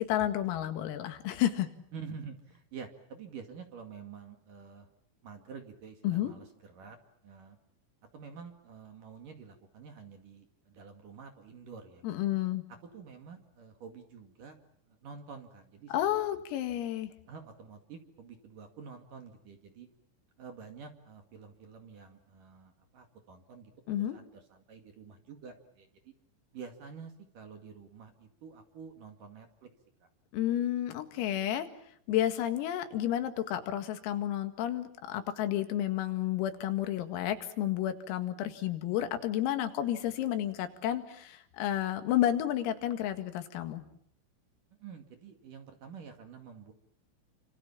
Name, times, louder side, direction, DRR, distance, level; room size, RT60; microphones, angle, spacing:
voice 1, 0.1-1.7 6.0-6.3 12.0-12.6 15.9-17.1 23.9-24.2 30.3-31.7 32.1-43.8, left 12 dB, 85° left, 8 dB, 4.6 m, -31 dB
voice 2, 1.9-4.9 5.2-7.0 7.2-7.6 8.1-12.0 12.9-14.6 14.9-16.3 17.3-19.9 20.4-26.1 26.5-29.7 30.0-30.1 44.8-46.7, right 6 dB, 50° right, 5 dB, 3.0 m, -48 dB
30.0 x 26.0 x 7.3 m, 0.66 s
omnidirectional pair, 5.9 m